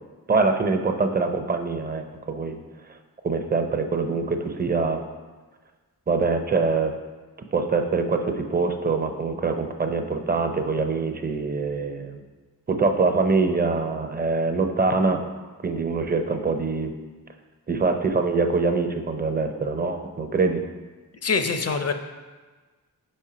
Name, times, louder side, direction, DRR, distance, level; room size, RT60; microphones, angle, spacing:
voice 1, 0.3-2.6 3.2-5.0 6.1-6.9 7.5-12.2 12.7-15.2 15.6-16.9 17.7-20.6, right 4 dB, 25° right, 6 dB, 0.6 m, -24 dB
voice 2, 21.2-21.9, left 4 dB, 40° left, 7 dB, 0.6 m, -24 dB
5.3 x 4.3 x 4.9 m, 1.3 s
wide cardioid pair, 80°, 37 cm